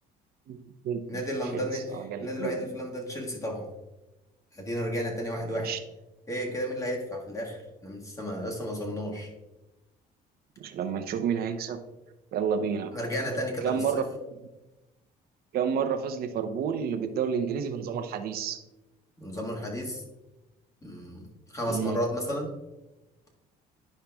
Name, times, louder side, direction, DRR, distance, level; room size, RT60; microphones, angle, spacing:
voice 1, 0.5-1.2 1.5-2.6 5.4-5.8 10.6-11.8 12.3-12.9 13.6-14.0 15.5-18.6 21.7-22.0, right 7 dB, 65° right, 7 dB, 0.7 m, -30 dB
voice 2, 1.1-1.8 2.2-3.7 4.5-5.7 6.3-9.3 12.9-14.0 19.2-20.0 20.8-22.5, equal, 20° left, -1 dB, 1.6 m, -33 dB
10.5 x 5.5 x 2.3 m, 1.0 s
cardioid pair, 110°, 17 cm